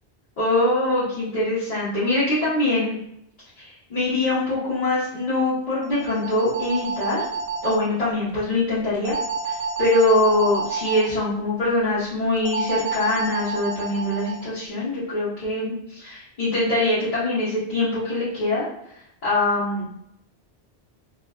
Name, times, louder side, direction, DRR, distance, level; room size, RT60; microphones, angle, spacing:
voice 1, 0.4-3.0 3.6-7.2 7.6-9.1 9.4-18.7 19.2-19.9, left 2 dB, 45° left, -11 dB, 0.9 m, -23 dB
sound 1, 5.8-7.8 9.0-11.0 12.5-14.4, right 4 dB, 50° right, 0.4 m, -29 dB
2.6 x 2.4 x 2.3 m, 0.77 s
omnidirectional pair, 1.0 m